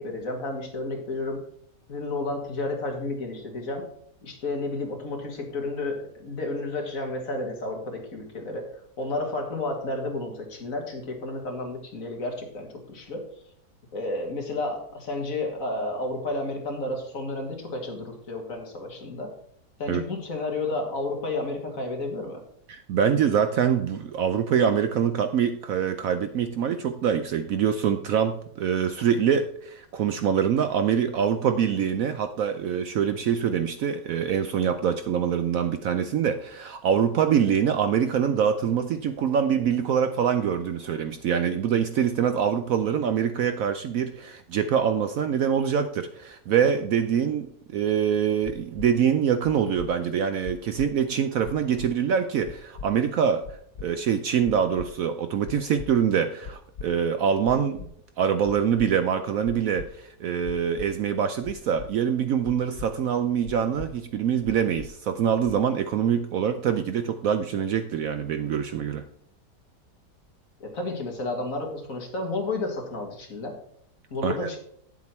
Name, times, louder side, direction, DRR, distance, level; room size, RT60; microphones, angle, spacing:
voice 1, 0.0-1.4 1.9-3.8 4.2-8.7 9.0-13.3 13.9-19.3 19.8-22.4 70.6-73.6 74.1-74.6, left 2 dB, 55° left, 2 dB, 2.1 m, -31 dB
voice 2, 22.7-53.4 53.8-57.9 58.2-69.0 74.2-74.3, right 8 dB, 65° right, 9 dB, 0.9 m, -24 dB
sound 1, 48.4-48.9 49.4-49.9 50.4-50.9 51.4-51.9 52.4-52.9 53.4-53.9 54.4-54.9 55.4-55.9 56.4-56.9 57.4-57.9 58.4-58.9 59.4-59.9 60.4-60.9 61.4-61.9 62.4-62.9 63.4-63.9 64.4-64.9 65.4-65.8, left 6 dB, 85° left, 0.5 m, -39 dB
9.4 x 7.5 x 4.3 m, 0.67 s
omnidirectional pair, 1.8 m